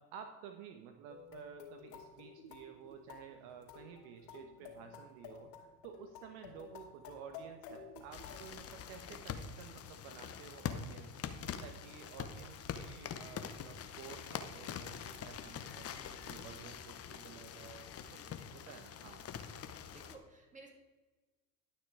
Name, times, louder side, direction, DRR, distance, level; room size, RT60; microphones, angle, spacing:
voice 1, 0.0-11.3 11.6-15.9 16.2-18.2 18.5-19.2, right 8 dB, 60° right, 6 dB, 1.2 m, -53 dB
sound 1, 1.1-8.5, left 5 dB, 70° left, 2.7 m, -52 dB
sound 2, 8.1-20.2, left 8 dB, 30° left, 0.9 m, -45 dB
voice 2, 15.9-16.8 17.2-17.4 18.1-18.3 19.9-20.7, right 3 dB, 15° right, 2 dB, 2.7 m, -59 dB
11.5 x 6.3 x 4.8 m, 1.2 s
hypercardioid pair, 95°, 48 cm